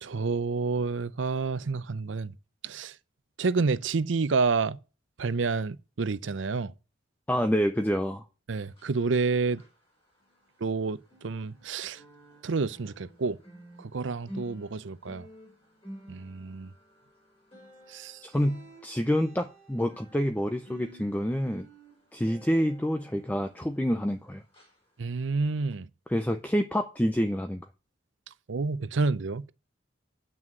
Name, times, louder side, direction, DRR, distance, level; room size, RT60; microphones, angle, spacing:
voice 1, 0.0-2.3 2.6-2.9 3.4-4.8 5.2-6.7 8.5-9.6 10.6-12.0 12.4-13.4 13.8-15.3 16.1-16.7 17.9-18.2 25.0-25.9 28.5-29.5, right 4 dB, 75° right, 0.6 m, -29 dB
voice 2, 7.3-8.2 18.2-21.7 22.1-24.4 26.1-27.6, equal, 10° left, 0.5 m, -27 dB
sound 1, 8.8-10.8 11.0-24.2 24.5-24.8 25.3-25.4, equal, 30° left, 4.1 m, -51 dB
9.1 x 6.2 x 7.6 m
head